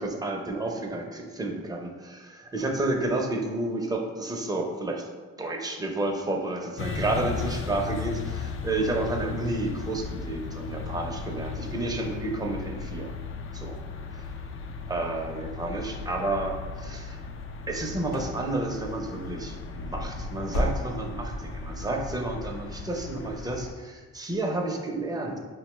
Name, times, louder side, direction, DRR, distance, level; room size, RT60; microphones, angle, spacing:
voice 1, 0.0-5.1 5.4-13.1 13.5-13.8 14.1-14.3 14.9-17.2 17.7-25.4, right 2 dB, 15° right, 1 dB, 0.6 m, -31 dB
sound 1, 6.8-23.7, left 4 dB, 45° left, 0.5 m, -36 dB
sound 2, 17.7-18.4 18.7-19.1 19.4-19.6 20.0-21.3 21.6-21.7 22.2-22.3, left 1 dB, 75° left, 0.8 m, -32 dB
5.3 x 2.2 x 3.0 m, 1.4 s
cardioid pair, 75°, 29 cm